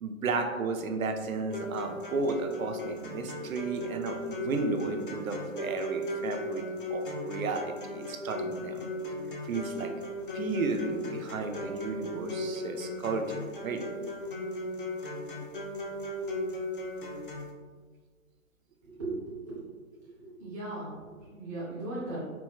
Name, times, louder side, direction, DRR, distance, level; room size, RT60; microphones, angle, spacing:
voice 1, 0.0-6.6 6.9-8.9 9.4-10.0 10.3-13.8, right 3 dB, 80° right, 5 dB, 0.6 m, -33 dB
sound 1, 1.5-17.5, left 1 dB, 40° left, 0.4 m, -37 dB
voice 2, 18.8-22.2, right 2 dB, 15° right, -10 dB, 0.5 m, -38 dB
4.4 x 2.1 x 2.3 m, 1.5 s
figure-of-eight pair, 140°, 41 cm